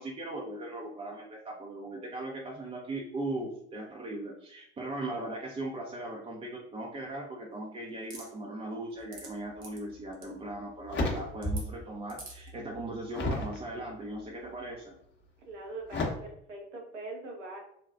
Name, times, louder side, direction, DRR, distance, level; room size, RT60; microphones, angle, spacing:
voice 1, 0.0-14.9, right 2 dB, 15° right, -2 dB, 0.5 m, -38 dB
sound 1, 8.1-8.3 8.9-9.3 9.6-9.8 10.1-10.3 11.4-11.6 12.1-12.5, right 3 dB, 55° right, 1.1 m, -45 dB
sound 2, 9.9-10.0 10.5-11.8 12.2-13.6 14.2-14.6 15.9-16.1, left 2 dB, 30° left, 0.8 m, -33 dB
voice 2, 15.5-17.6, right 2 dB, 80° right, 0 dB, 0.8 m, -42 dB
3.8 x 2.2 x 2.3 m, 0.69 s
figure-of-eight pair, 55°, 36 cm